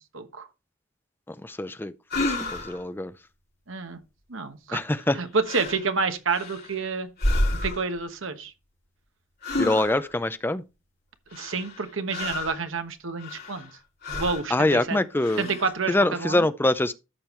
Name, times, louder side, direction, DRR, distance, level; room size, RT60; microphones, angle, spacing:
voice 1, 0.1-0.5 3.7-4.0 4.3-4.8 5.1-7.1 7.6-8.5 11.3-13.7 14.1-15.0 15.4-16.5, right 4 dB, 65° right, 1.2 m, -29 dB
voice 2, 1.4-2.2 2.5-3.1 4.7-5.2 9.6-10.6 14.5-15.5 15.9-16.9, left 1 dB, 10° left, 0.5 m, -24 dB
sound 1, 2.1-2.8 4.9-5.2 5.4-5.9 6.3-6.8 7.2-7.9 9.4-10.2 11.3-12.6 13.2-13.7 14.0-14.5 15.2-15.7, left 1 dB, 50° left, 5.0 m, -30 dB
13.5 x 5.3 x 3.1 m
head